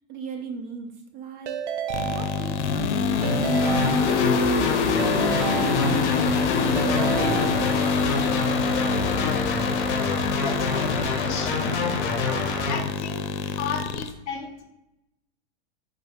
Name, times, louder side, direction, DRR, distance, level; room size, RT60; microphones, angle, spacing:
voice 1, 0.1-1.5 2.1-3.3, right 5 dB, 30° right, 4 dB, 0.5 m, -37 dB
Keyboard (musical) / Ringtone, 1.5-2.8 3.2-4.5 5.0-6.3 6.8-8.1, right 10 dB, 80° right, 0.5 m, -32 dB
sound 1, 1.9-14.1, left 5 dB, 90° left, 0.5 m, -25 dB
sound 2, 3.6-12.8, left 4 dB, 50° left, 0.9 m, -27 dB
voice 2, 10.4-11.7 12.7-13.3 13.6-14.6, left 6 dB, 20° left, 1 dB, 0.3 m, -34 dB
3.9 x 2.6 x 3.5 m, 0.90 s
supercardioid pair, 155°, 34 cm